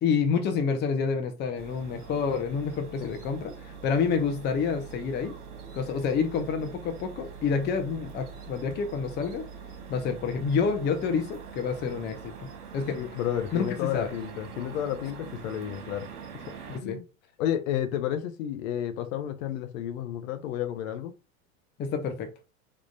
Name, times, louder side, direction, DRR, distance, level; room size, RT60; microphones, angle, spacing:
voice 1, 0.0-5.3 5.7-9.5 9.9-12.5 12.7-13.0 13.5-13.7 13.9-14.1 16.7-17.0 21.8-22.3, left 5 dB, 25° left, 0.5 m, -28 dB
sound 1, 1.5-16.8, right 6 dB, 80° right, 1.0 m, -44 dB
voice 2, 12.9-16.1 16.5-17.0 17.4-21.1, left 10 dB, 60° left, 0.7 m, -31 dB
3.6 x 2.4 x 2.5 m
hypercardioid pair, 95°, 45 cm